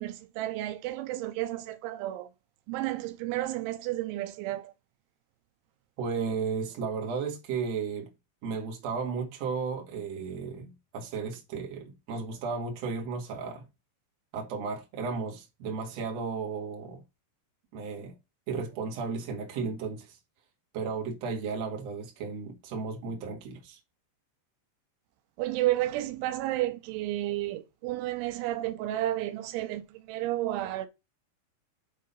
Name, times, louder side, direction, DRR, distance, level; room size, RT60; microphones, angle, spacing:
voice 1, 0.0-2.3 2.7-4.7 25.4-30.9, right 15 dB, 85° right, 3.1 m, -32 dB
voice 2, 6.0-8.1 8.4-13.6 14.3-17.0 17.7-18.1 18.5-20.2 20.7-23.8, right 5 dB, 50° right, 2.2 m, -34 dB
8.5 x 3.7 x 5.5 m
omnidirectional pair, 5.4 m